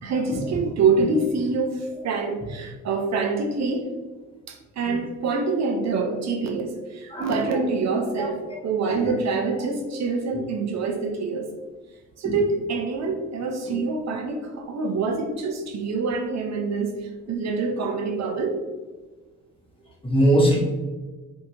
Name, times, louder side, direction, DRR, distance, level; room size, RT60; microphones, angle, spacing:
voice 1, 0.0-3.9 4.5-11.5 12.2-18.5, right 4 dB, 60° right, 3 dB, 0.6 m, -26 dB
voice 2, 7.1-7.6 8.2-8.3 9.0-9.1 12.2-12.4 20.0-20.6, right 1 dB, 20° left, -3 dB, 1.2 m, -21 dB
4.6 x 2.7 x 2.6 m, 1.3 s
cardioid pair, 90°, 30 cm